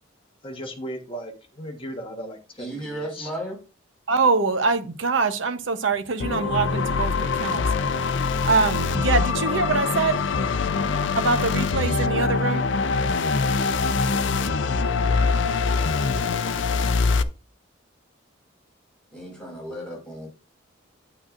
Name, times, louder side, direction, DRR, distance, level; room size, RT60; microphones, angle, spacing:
voice 1, 0.4-3.3, equal, 30° left, 1.3 m, -36 dB
voice 2, 2.6-3.6 19.1-20.3, right 1 dB, 5° left, 4.9 m, -34 dB
voice 3, 4.1-7.7 7.9-8.2 8.4-10.2 11.2-12.7, right 4 dB, 70° right, 0.8 m, -24 dB
sound 1, 6.2-17.2, left 4 dB, 65° left, 0.5 m, -23 dB
8.8 x 8.5 x 2.5 m
head